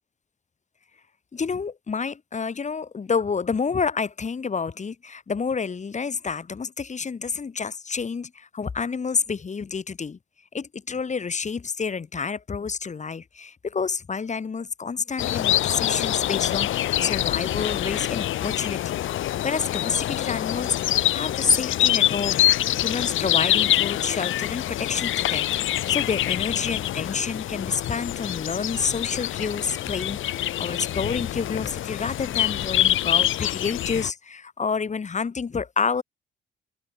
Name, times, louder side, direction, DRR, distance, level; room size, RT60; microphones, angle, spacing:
voice 1, 1.3-10.2 10.5-19.0 19.4-36.0, left 5 dB, 35° left, 4.5 m, -29 dB
sound 1, 15.2-34.1, left 13 dB, 80° left, 3.9 m, -25 dB
cardioid pair, 90°, 20 cm